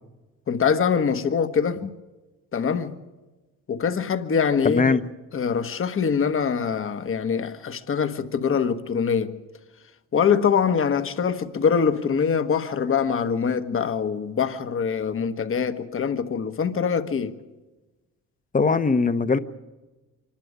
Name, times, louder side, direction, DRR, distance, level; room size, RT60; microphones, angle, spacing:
voice 1, 0.5-1.9 2.5-3.0 3.7-5.0 5.3-9.4 10.1-17.4, left 6 dB, 45° left, 1.3 m, -24 dB
voice 2, 4.6-5.0 18.5-19.4, left 4 dB, 25° left, 1.0 m, -20 dB
25.0 x 12.0 x 9.7 m
cardioid pair, 90°, 30 cm